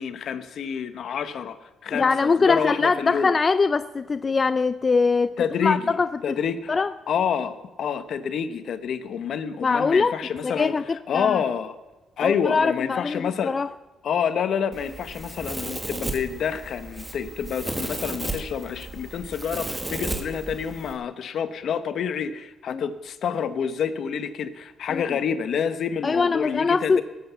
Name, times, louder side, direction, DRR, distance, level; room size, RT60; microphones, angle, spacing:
voice 1, 0.0-1.6 1.8-3.3 5.4-6.0 6.2-6.8 7.1-10.8 11.1-11.7 12.2-13.5 14.0-27.0, left 7 dB, 65° left, 11 dB, 1.0 m, -28 dB
voice 2, 1.9-6.4 6.7-6.9 9.6-10.2 10.4-11.4 12.2-13.7 22.7-22.8 24.9-25.2 26.0-27.0, left 4 dB, 35° left, 13 dB, 0.4 m, -22 dB
Domestic sounds home sounds, 14.7-20.9, right 2 dB, 15° right, 1.9 m, -34 dB
18.5 x 7.7 x 6.9 m, 1.1 s
cardioid pair, 90°, 0 cm